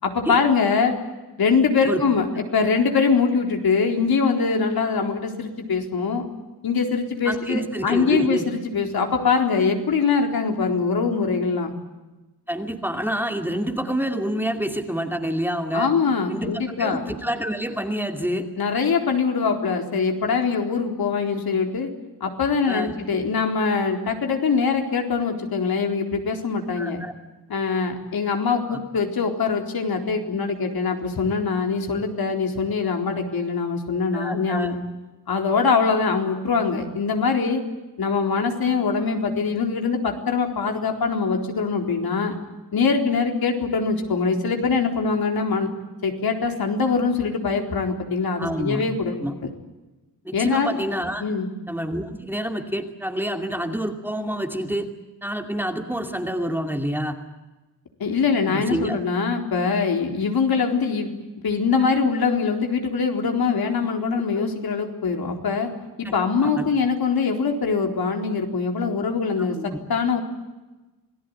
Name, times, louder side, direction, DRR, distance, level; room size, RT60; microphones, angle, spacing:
voice 1, 0.0-1.0 1.4-2.3 2.5-6.2 6.6-11.7 15.7-17.0 18.6-21.9 22.2-27.0 27.5-34.8 35.3-37.6 38.0-42.4 42.7-45.7 46.0-49.2 50.3-50.7 51.2-51.5 58.0-61.1 61.4-65.7 66.0-69.6 69.9-70.2, left 5 dB, 65° left, 3 dB, 4.2 m, -23 dB
voice 2, 7.3-8.5 12.5-15.9 16.3-18.5 22.7-22.9 26.8-27.1 28.7-28.8 34.1-34.7 48.4-48.8 49.2-49.3 50.2-51.2 51.7-54.9 55.2-57.2 58.5-59.0 64.3-64.4 66.0-66.1 66.4-66.7 69.4-69.8, equal, 5° right, 4 dB, 2.5 m, -27 dB
28.0 x 19.0 x 9.6 m, 1.1 s
wide cardioid pair, 130°, 39 cm